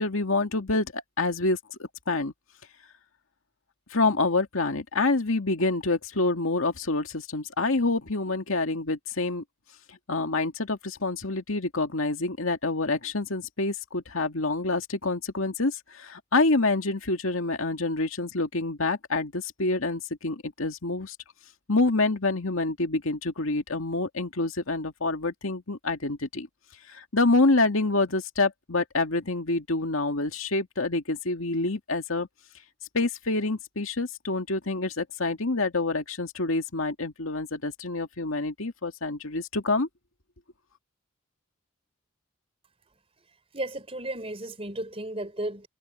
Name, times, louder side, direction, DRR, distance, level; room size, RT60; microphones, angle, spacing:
voice 1, 0.0-2.3 3.9-9.4 10.1-21.2 21.7-26.5 26.9-32.3 32.9-39.9, left 2 dB, 80° left, 2.2 m, -27 dB
voice 2, 43.5-45.7, right 1 dB, 30° right, 4.3 m, -34 dB
head